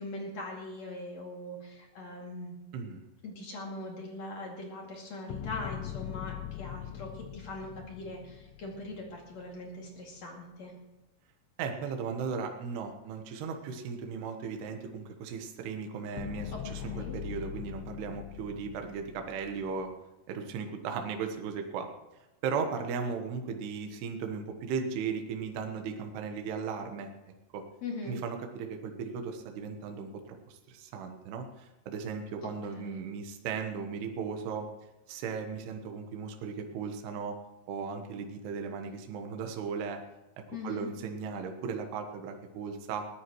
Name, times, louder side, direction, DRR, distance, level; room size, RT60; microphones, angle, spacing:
voice 1, 0.0-2.6 3.2-10.7 16.5-17.2 27.8-28.2 32.4-33.0 40.5-40.9, left 2 dB, 45° left, -1 dB, 3.2 m, -41 dB
voice 2, 2.7-3.0 11.6-19.9 20.3-21.9 22.4-27.6 28.1-34.7 35.1-37.4 37.7-40.0 40.4-43.1, right 5 dB, 75° right, 4 dB, 3.1 m, -36 dB
sound 1, 5.3-9.6 16.2-19.9, left 11 dB, 85° left, 2.8 m, -42 dB
21.0 x 14.0 x 3.1 m, 1.0 s
omnidirectional pair, 4.9 m